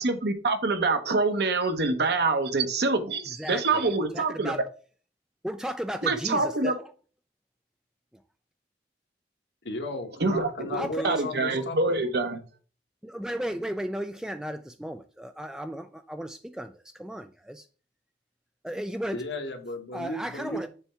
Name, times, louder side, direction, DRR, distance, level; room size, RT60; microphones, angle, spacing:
voice 1, 0.0-4.5 6.1-6.7 10.2-10.7 11.0-12.4, right 3 dB, 65° right, 1.0 m, -25 dB
voice 2, 3.3-4.6 5.4-6.9 8.1-8.2 10.7-11.2 11.5-11.6 13.0-17.7 18.6-19.2 19.9-20.7, equal, 5° right, 0.3 m, -35 dB
voice 3, 9.6-12.0 19.1-20.7, left 1 dB, 70° left, 1.3 m, -35 dB
7.0 x 3.4 x 5.6 m
head